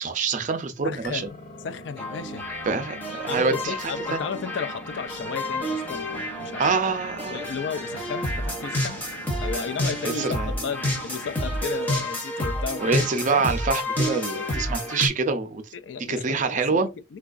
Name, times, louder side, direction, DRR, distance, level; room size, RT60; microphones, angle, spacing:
voice 1, 0.0-1.3 2.7-4.2 6.6-7.4 10.0-10.5 12.8-15.6 16.1-16.9, right 4 dB, 40° right, 0.5 m, -26 dB
voice 2, 0.8-2.5 3.3-6.7 7.3-9.0 9.4-13.0 13.3-13.4 15.7-17.2, left 6 dB, 60° left, 0.4 m, -34 dB
sound 1, 1.0-11.9, equal, 45° left, 1.4 m, -43 dB
sound 2, 2.0-15.1, equal, 10° left, 0.7 m, -30 dB
4.5 x 2.3 x 2.5 m
head